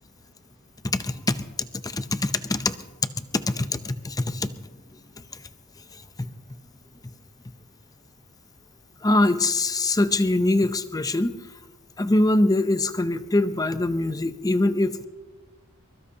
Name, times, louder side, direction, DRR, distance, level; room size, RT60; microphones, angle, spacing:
voice 1, 0.8-1.4 1.8-2.7 3.3-4.5 6.2-6.3 9.0-11.3 12.0-15.1, left 2 dB, 15° left, 11 dB, 0.6 m, -23 dB
23.0 x 21.5 x 2.8 m, 1.3 s
head